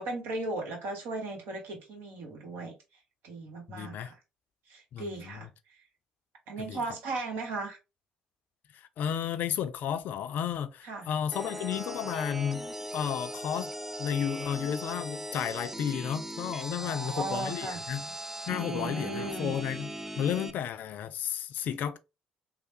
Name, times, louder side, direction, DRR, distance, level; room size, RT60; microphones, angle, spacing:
voice 1, 0.0-2.7 3.2-4.2 4.7-5.5 6.5-7.8 10.8-11.1 16.8-17.8 18.5-19.5, right 2 dB, 60° right, 1.0 m, -36 dB
voice 2, 3.7-4.1 4.9-5.5 6.6-6.8 8.7-13.7 14.0-18.1 18.5-22.0, left 9 dB, 55° left, 0.3 m, -33 dB
sound 1, 11.3-20.5, right 1 dB, 10° right, 0.4 m, -39 dB
3.2 x 2.0 x 2.7 m
figure-of-eight pair, 50°, 4 cm